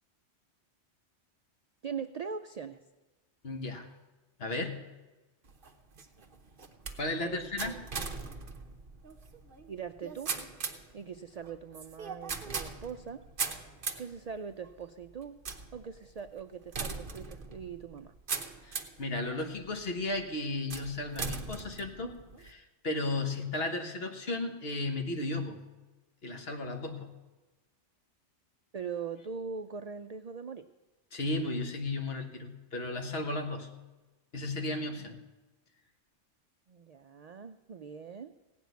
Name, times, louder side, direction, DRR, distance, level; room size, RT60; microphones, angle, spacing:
voice 1, 1.8-2.8 7.2-7.8 9.7-10.3 10.9-13.2 14.0-15.4 15.7-18.1 28.7-30.7 35.0-35.1 36.7-38.3, right 6 dB, 70° right, 9 dB, 0.3 m, -41 dB
voice 2, 3.4-3.9 4.4-4.8 7.0-7.8 18.6-25.6 26.2-27.1 31.1-33.7 34.3-35.2, left 2 dB, 55° left, 4 dB, 1.5 m, -34 dB
sound 1, 5.4-19.1 19.6-20.1 20.7-22.5, right 4 dB, 50° right, 1.1 m, -40 dB
16.5 x 6.1 x 9.3 m, 1.2 s
omnidirectional pair, 1.2 m